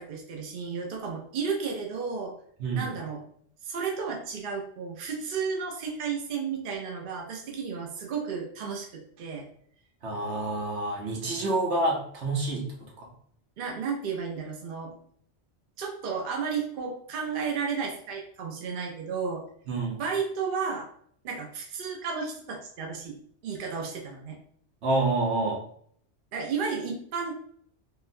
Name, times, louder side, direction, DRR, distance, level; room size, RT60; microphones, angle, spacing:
voice 1, 0.0-2.3 2.8-3.2 3.6-9.4 13.6-15.0 15.8-19.4 20.0-20.9 21.2-23.2 23.4-24.4 26.3-27.3, right 5 dB, 55° right, 0 dB, 0.7 m, -33 dB
voice 2, 10.0-13.1 19.7-20.0 24.8-25.6, right 2 dB, 80° right, -2 dB, 1.2 m, -28 dB
3.6 x 2.2 x 2.5 m, 0.62 s
omnidirectional pair, 1.2 m